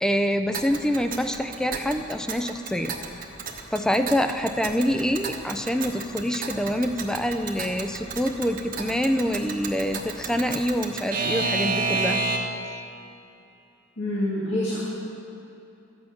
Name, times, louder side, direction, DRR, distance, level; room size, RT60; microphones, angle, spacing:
voice 1, 0.0-2.9 3.7-12.2, equal, 5° left, 7 dB, 0.5 m, -26 dB
Alarm / Clock, 0.5-12.7, right 3 dB, 45° right, 1.1 m, -32 dB
voice 2, 14.0-14.8, left 1 dB, 75° left, -8 dB, 2.3 m, -26 dB
13.5 x 8.8 x 5.9 m, 2.8 s
head